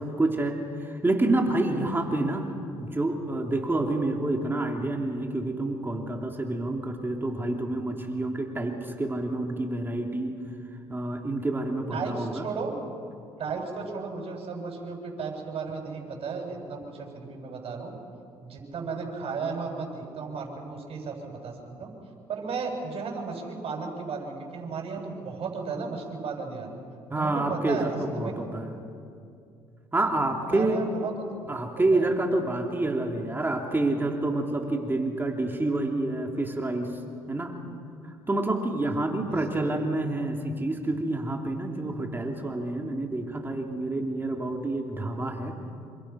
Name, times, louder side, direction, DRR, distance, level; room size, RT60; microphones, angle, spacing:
voice 1, 0.0-2.5 2.8-10.4 10.9-12.5 27.1-28.7 29.9-30.8 31.5-37.0 37.3-37.5 38.0-45.6, right 2 dB, 20° right, 2 dB, 3.2 m, -28 dB
voice 2, 11.9-12.7 13.4-17.9 18.4-21.9 22.3-26.7 27.2-28.3 30.4-31.1 31.9-32.1 39.3-39.8, right 5 dB, 55° right, 1 dB, 7.6 m, -34 dB
28.0 x 25.5 x 6.0 m, 2.4 s
supercardioid pair, 75°, 12 cm